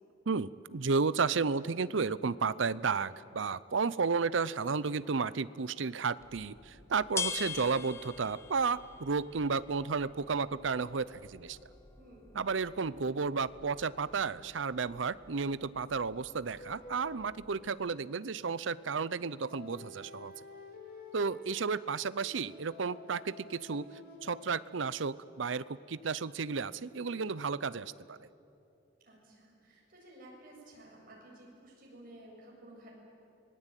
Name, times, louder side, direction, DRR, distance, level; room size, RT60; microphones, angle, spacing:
voice 1, 0.3-11.6 12.3-20.3 21.1-23.9 24.2-28.2, right 5 dB, 70° right, 18 dB, 0.6 m, -32 dB
sound 1, 6.2-17.7, left 5 dB, 15° left, 0.8 m, -45 dB
voice 2, 12.0-12.3 29.0-33.0, right 1 dB, 45° right, -2 dB, 7.5 m, -54 dB
sound 2, 16.5-18.2 19.3-25.3 26.8-27.4, left 2 dB, 50° left, 3.0 m, -51 dB
25.5 x 20.0 x 9.1 m, 2.7 s
head